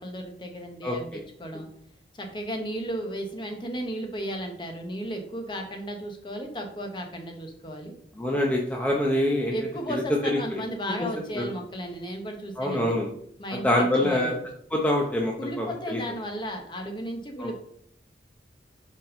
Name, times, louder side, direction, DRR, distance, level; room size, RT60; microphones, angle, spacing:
voice 1, 0.0-1.7 2.1-7.9 9.5-13.0 13.4-14.4 15.4-17.5, equal, 25° left, 3 dB, 1.2 m, -34 dB
voice 2, 8.2-9.5 10.2-10.4 11.0-11.1 11.3-11.4 12.6-13.1 13.6-14.3 14.7-16.0 17.4-17.5, left 1 dB, 10° left, -1 dB, 0.8 m, -25 dB
5.3 x 5.2 x 5.4 m, 0.67 s
head